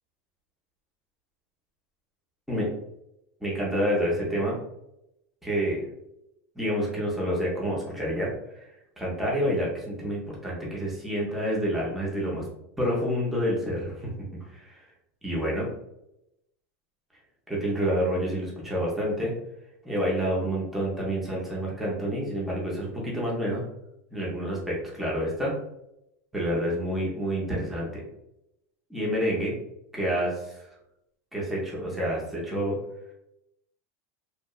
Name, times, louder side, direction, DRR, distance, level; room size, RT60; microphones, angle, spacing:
voice 1, 3.4-4.6 5.4-5.9 6.6-8.7 9.0-12.5 12.8-14.1 14.5-14.9 15.2-15.7 17.5-19.3 19.8-23.6 24.1-25.6 26.3-28.0 28.9-29.5 29.9-30.6 31.3-32.8, equal, ahead, -5 dB, 0.5 m, -28 dB
2.7 x 2.1 x 2.2 m, 0.84 s
supercardioid pair, 175°, 8 cm